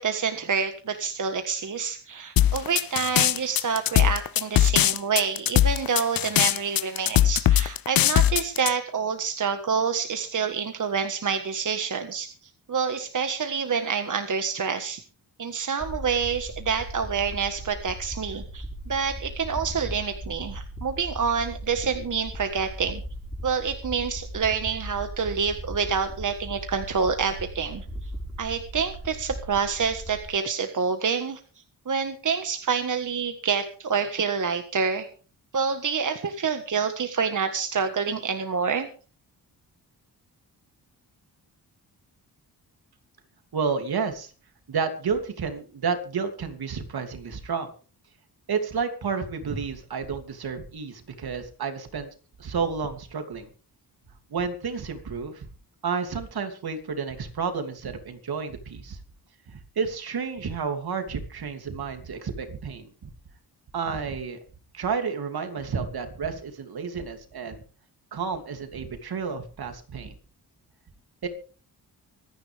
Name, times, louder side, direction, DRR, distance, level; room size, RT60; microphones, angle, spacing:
voice 1, 0.0-15.0 15.4-23.0 23.4-27.8 28.4-31.4 31.8-35.1 35.5-38.9, right 6 dB, 50° right, 6 dB, 1.6 m, -27 dB
sound 1, 2.4-8.7, left 12 dB, 60° left, 0.6 m, -20 dB
sound 2, 15.8-30.3, right 1 dB, ahead, 5.1 m, -38 dB
voice 2, 43.5-44.3 44.7-47.7 48.5-52.1 52.4-53.5 54.3-55.5 55.8-59.0 59.5-63.1 63.7-64.4 64.7-67.6 68.1-70.1 71.2-71.3, right 5 dB, 65° right, 6 dB, 2.9 m, -31 dB
25.5 x 10.0 x 3.5 m, 0.39 s
cardioid pair, 90°, 40 cm